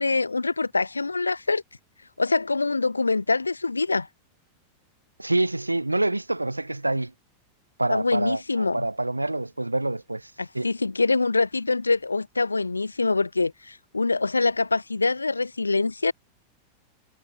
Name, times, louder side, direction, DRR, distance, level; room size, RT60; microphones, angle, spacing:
voice 1, 0.0-1.6 2.2-4.1 7.9-8.8 10.4-16.1, left 3 dB, 80° left, 1.7 m, -24 dB
voice 2, 5.2-7.1 7.8-10.7, right 2 dB, 85° right, 2.9 m, -26 dB
figure-of-eight pair, 90°, 0 cm